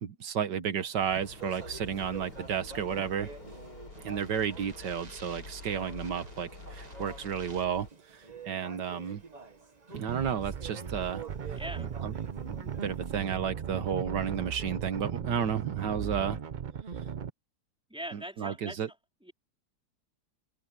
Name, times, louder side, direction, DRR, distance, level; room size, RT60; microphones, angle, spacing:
voice 1, 0.0-3.3 4.0-7.9 8.1-9.2 9.9-11.2 12.0-12.1 12.4-16.4 18.1-18.9, right 8 dB, 90° right, 1.9 m, -32 dB
Speech, 0.8-13.2, right 4 dB, 25° right, 1.3 m, -48 dB
sound 1, 1.0-7.9, left 3 dB, 70° left, 5.3 m, -47 dB
sound 2, 9.9-17.3, right 7 dB, 55° right, 0.5 m, -37 dB
voice 2, 11.5-12.0 17.9-18.8 19.2-19.3, right 1 dB, 5° right, 4.4 m, -41 dB
omnidirectional pair, 1.8 m